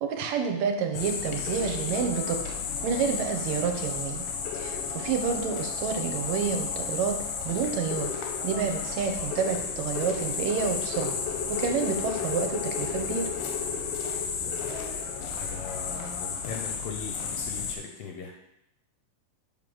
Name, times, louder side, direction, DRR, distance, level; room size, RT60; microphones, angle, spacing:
voice 1, 0.0-2.4 2.8-4.3 4.5-11.2 11.5-13.3, right 6 dB, 70° right, 4 dB, 1.9 m, -29 dB
sound 1, 0.9-17.8, left 6 dB, 90° left, 2.3 m, -32 dB
voice 2, 14.4-14.7 15.1-18.3, left 5 dB, 70° left, 1 dB, 1.6 m, -40 dB
7.0 x 3.8 x 6.1 m, 0.80 s
omnidirectional pair, 3.5 m